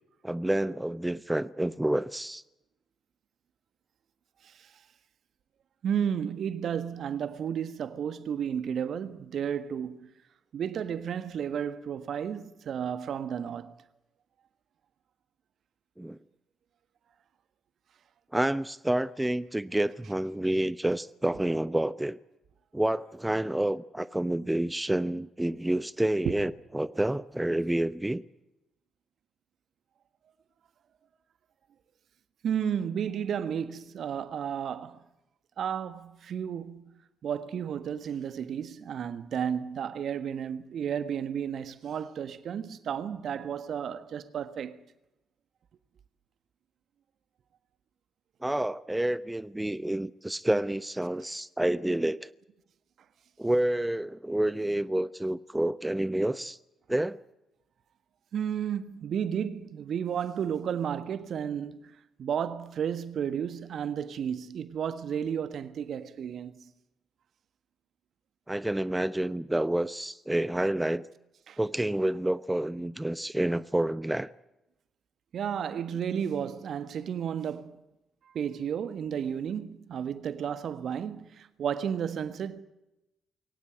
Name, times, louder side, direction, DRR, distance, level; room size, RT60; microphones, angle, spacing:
voice 1, 0.2-2.4 16.0-16.2 18.3-22.2 22.7-28.2 48.4-52.3 53.4-56.6 56.9-57.2 68.5-71.1 71.6-74.3, right 1 dB, 10° right, 0.9 m, -29 dB
voice 2, 5.8-10.1 10.5-13.7 26.2-26.4 32.4-35.0 35.6-36.8 37.2-44.8 58.3-61.9 62.2-66.7 71.5-71.6 75.3-77.8 78.3-82.6, right 8 dB, 60° right, 1.5 m, -32 dB
23.0 x 18.5 x 9.3 m
hypercardioid pair, 40°, 0 cm